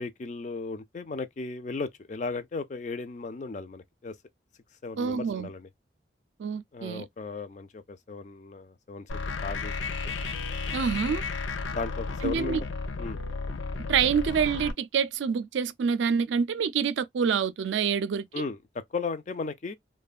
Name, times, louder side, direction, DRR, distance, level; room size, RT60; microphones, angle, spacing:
voice 1, 0.0-4.2 4.8-5.7 6.7-9.1 9.4-10.1 11.1-11.2 11.7-12.6 13.0-13.2 18.3-19.7, left 4 dB, 40° left, 0.4 m, -36 dB
voice 2, 5.0-5.5 6.4-7.0 10.7-11.2 12.2-12.6 13.9-18.2, right 6 dB, 75° right, 0.4 m, -27 dB
sound 1, 9.1-14.7, left 4 dB, 90° left, 0.6 m, -33 dB
3.0 x 2.1 x 2.3 m
head